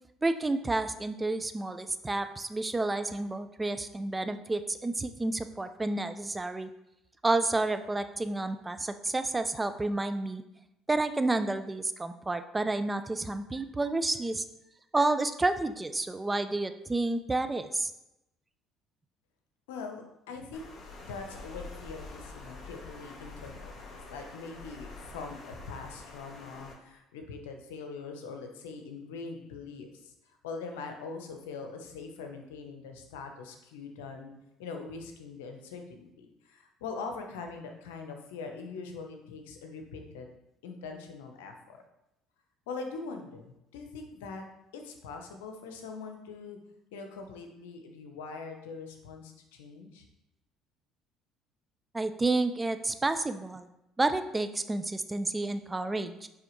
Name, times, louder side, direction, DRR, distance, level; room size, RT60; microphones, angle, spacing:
voice 1, 0.2-6.7 7.2-10.4 10.9-14.4 14.9-17.9 51.9-53.7 54.0-56.3, right 2 dB, 20° right, 10 dB, 0.5 m, -30 dB
voice 2, 19.7-20.7 21.0-30.1 30.4-34.3 34.6-40.3 40.6-41.8 42.7-44.4 44.7-46.6 46.9-50.0, left 4 dB, 85° left, 4 dB, 0.8 m, -42 dB
Water, 20.5-26.7, left 3 dB, 50° left, 1.5 m, -46 dB
8.7 x 3.4 x 3.1 m, 0.89 s
hypercardioid pair, 70°, 0 cm